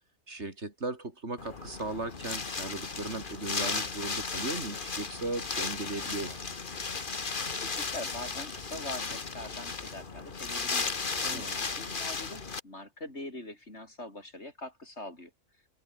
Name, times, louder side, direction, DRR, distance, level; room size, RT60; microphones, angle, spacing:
voice 1, 0.3-6.6 11.2-11.6, right 2 dB, 60° right, 3.8 m, -37 dB
Wind, 1.4-12.6, left 4 dB, 40° left, 1.7 m, -35 dB
voice 2, 7.2-15.3, left 1 dB, 55° left, 6.3 m, -43 dB
omnidirectional pair, 1.3 m